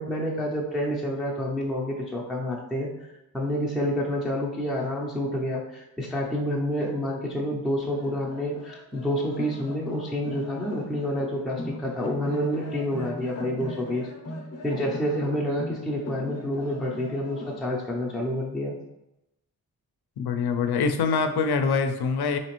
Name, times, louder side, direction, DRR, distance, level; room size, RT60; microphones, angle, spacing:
voice 1, 0.0-2.9 3.3-14.1 14.6-18.8, equal, ahead, -3 dB, 0.4 m, -28 dB
sound 1, 7.8-17.6, left 1 dB, 40° left, 0.6 m, -39 dB
voice 2, 20.2-22.4, left 5 dB, 80° left, 7 dB, 0.5 m, -24 dB
4.1 x 2.9 x 2.9 m, 0.93 s
wide cardioid pair, 145°, 38 cm